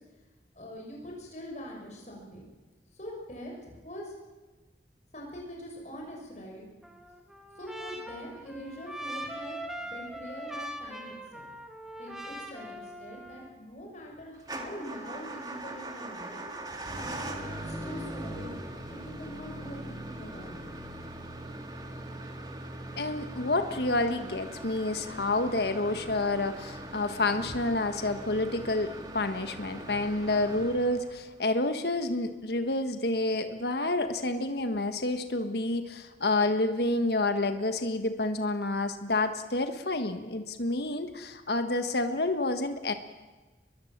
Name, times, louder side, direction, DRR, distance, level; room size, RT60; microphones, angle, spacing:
voice 1, 0.5-2.5 2.9-4.1 5.1-6.6 7.6-11.5 12.0-16.4 16.9-20.7, equal, 40° left, 0 dB, 6.1 m, -43 dB
Trumpet, 6.8-13.6, right 1 dB, 5° right, 2.1 m, -41 dB
Motor vehicle (road) / Engine starting / Idling, 14.4-31.4, right 1 dB, 25° right, 2.0 m, -41 dB
voice 2, 23.0-42.9, left 2 dB, 65° left, 8 dB, 1.5 m, -29 dB
23.5 x 22.0 x 7.4 m, 1.2 s
head